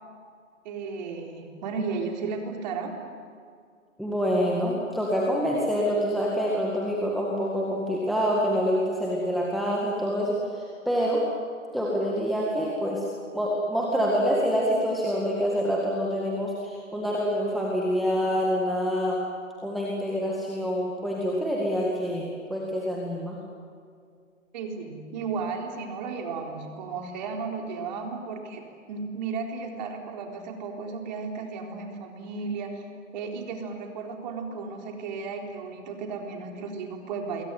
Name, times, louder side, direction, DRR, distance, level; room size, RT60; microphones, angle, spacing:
voice 1, 0.6-2.9 24.5-32.9 33.1-37.4, right 4 dB, 35° right, 3 dB, 3.9 m, -34 dB
voice 2, 4.0-11.2 11.7-13.0 13.3-19.2 19.6-23.4, equal, ahead, -3 dB, 2.0 m, -26 dB
27.5 x 22.5 x 9.4 m, 2.2 s
figure-of-eight pair, 145°, 40 cm